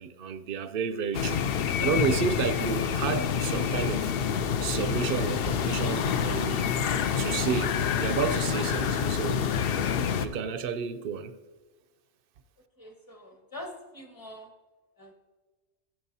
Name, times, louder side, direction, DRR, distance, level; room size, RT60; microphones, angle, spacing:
voice 1, 0.0-1.4 1.8-4.1 4.6-6.6 7.2-9.4 10.2-11.3, right 6 dB, 60° right, 0.6 m, -31 dB
sound 1, 1.1-10.3, left 7 dB, 60° left, 0.7 m, -27 dB
voice 2, 12.8-14.5 15.0-15.1, left 1 dB, 15° left, 1.2 m, -44 dB
14.5 x 7.8 x 2.7 m
omnidirectional pair, 1.3 m